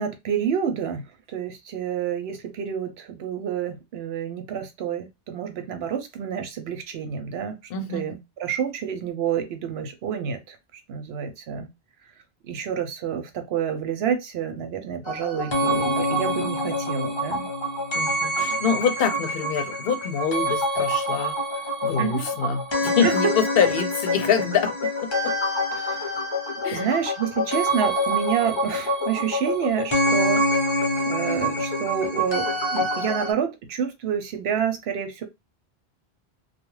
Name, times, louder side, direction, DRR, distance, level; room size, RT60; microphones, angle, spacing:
voice 1, 0.0-7.6 7.9-11.7 12.4-17.5 22.0-22.2 23.0-23.1 25.7-26.2 26.7-30.4 31.0-35.2, right 8 dB, 85° right, 0.9 m, -28 dB
voice 2, 7.7-8.1 18.0-21.4 21.8-25.3 26.6-26.9, left 7 dB, 70° left, 0.7 m, -25 dB
sound 1, 15.1-33.3, equal, 35° left, 0.5 m, -26 dB
2.3 x 2.0 x 3.0 m
omnidirectional pair, 1.0 m